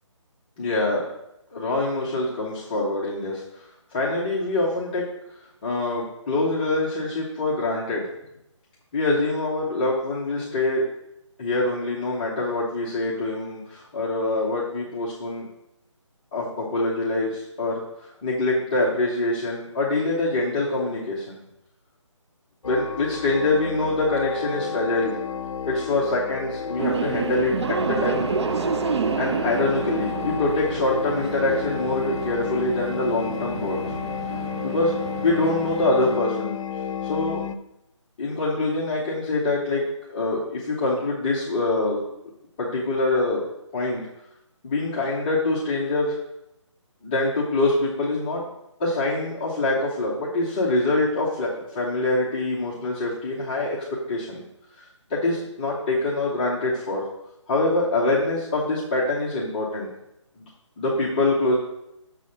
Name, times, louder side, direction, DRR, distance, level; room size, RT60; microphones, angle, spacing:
voice 1, 0.6-1.0 1.5-3.4 3.9-5.1 5.6-8.1 8.9-10.8 11.4-15.5 16.3-21.4 22.6-25.2 25.7-28.3 29.2-33.8 34.6-34.9 35.2-36.5 37.0-37.4 38.2-42.0 42.6-43.4 43.7-44.0 44.6-46.2 47.0-48.4 48.8-53.8 54.1-54.4 54.8-57.1 57.5-59.9 60.4-60.5 60.8-61.6, left 2 dB, 15° left, -7 dB, 0.9 m, -25 dB
sound 1, 22.6-37.6, left 6 dB, 85° left, 0.6 m, -32 dB
sound 2, 26.8-36.2, right 5 dB, 60° right, 0.4 m, -30 dB
6.7 x 4.0 x 6.4 m, 0.85 s
hypercardioid pair, 170°, 16 cm